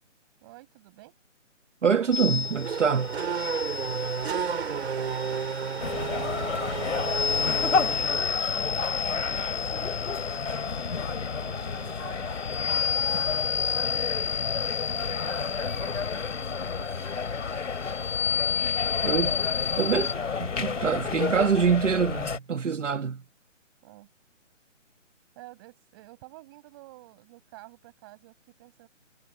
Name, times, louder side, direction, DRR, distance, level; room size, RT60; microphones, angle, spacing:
voice 1, 0.4-1.1 3.9-7.0 7.8-10.7 11.4-12.3 13.4-14.2 14.8-16.2 16.8-17.1 20.8-21.2 23.8-24.1 25.3-28.9, right 20 dB, 20° right, 6.8 m, -51 dB
voice 2, 1.8-3.2 19.0-19.3 19.8-23.2, right 6 dB, 70° right, 1.5 m, -25 dB
Race car auto racing / Accelerating revving vroom, 2.0-8.7, right 6 dB, 55° right, 3.0 m, -32 dB
sound 1, 2.1-20.1, left 8 dB, 35° left, 5.3 m, -32 dB
sound 2, 5.8-22.4, left 5 dB, 75° left, 2.5 m, -31 dB
hypercardioid pair, 170°, 38 cm